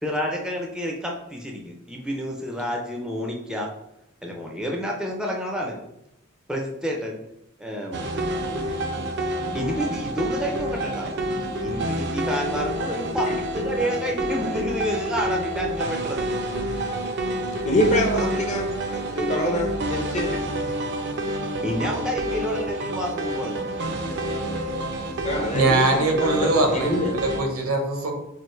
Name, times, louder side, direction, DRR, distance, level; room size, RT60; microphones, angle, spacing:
voice 1, 0.0-3.7 4.2-5.8 6.5-7.2 7.6-8.0 9.5-13.3 13.5-16.3 21.6-23.7, equal, 5° right, 0 dB, 0.5 m, -29 dB
sound 1, 7.9-27.4, right 1 dB, 55° right, 0.5 m, -28 dB
voice 2, 17.6-18.7 18.9-20.3 25.2-27.1, left 1 dB, 30° left, 1 dB, 0.7 m, -25 dB
voice 3, 25.5-28.1, right 2 dB, 75° right, 3 dB, 0.8 m, -22 dB
4.6 x 2.5 x 3.1 m, 0.84 s
head